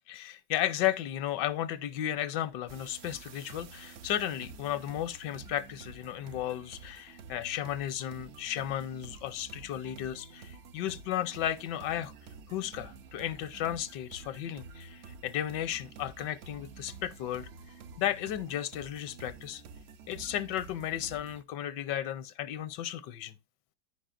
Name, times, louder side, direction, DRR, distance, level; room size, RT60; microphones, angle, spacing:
voice 1, 0.1-12.1 12.5-17.5 18.0-19.6 20.1-23.3, left 12 dB, 80° left, 1.2 m, -34 dB
sound 1, 2.7-21.4, right 5 dB, 80° right, 0.6 m, -50 dB
14.0 x 5.2 x 2.4 m
omnidirectional pair, 1.9 m